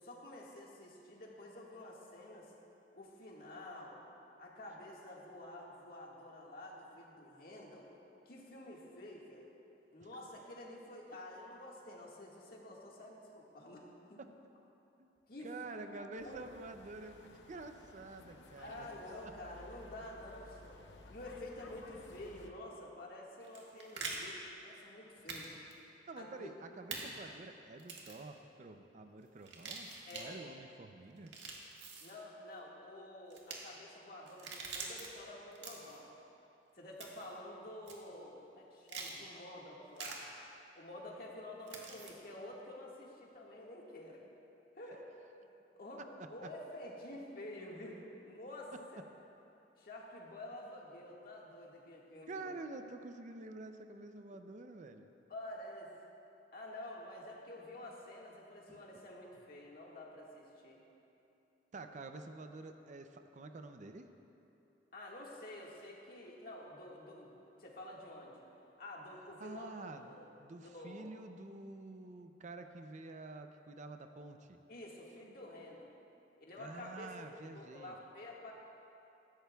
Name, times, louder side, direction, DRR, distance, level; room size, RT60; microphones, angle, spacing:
voice 1, 0.0-2.5 2.9-4.0 4.4-7.9 8.2-9.5 9.9-14.2 15.3-15.9 16.2-16.4 18.6-20.8 21.1-25.5 26.2-26.5 30.0-30.4 32.0-36.1 36.7-40.3 40.7-44.2 44.8-45.1 45.7-49.0 49.8-52.5 55.3-55.9 56.5-60.8 64.9-67.3 67.6-68.4 68.8-69.7 70.1-70.2 70.6-71.0 74.7-75.9 76.4-77.1 77.5-78.5, left 1 dB, 55° left, -3 dB, 1.8 m, -49 dB
voice 2, 15.4-18.9 19.2-19.3 26.1-31.4 46.0-46.1 46.4-46.5 48.7-49.0 52.3-55.1 58.7-59.0 61.7-64.1 69.4-70.1 70.4-74.6 76.6-78.0, right 3 dB, 45° right, 7 dB, 0.5 m, -48 dB
sound 1, 16.2-22.5, left 2 dB, 75° left, 0.8 m, -56 dB
sound 2, 23.4-24.2 25.3-25.5 25.7-25.8 26.9-27.0 27.8-28.2 29.4-30.3 31.2-32.1 33.3-33.6 34.3-35.1 35.5-36.0 37.0-37.3 37.9-38.0 38.9-39.1 40.0-40.2 41.7-42.1, right 4 dB, 75° right, 1.6 m, -44 dB
17.0 x 13.5 x 2.3 m, 2.8 s
head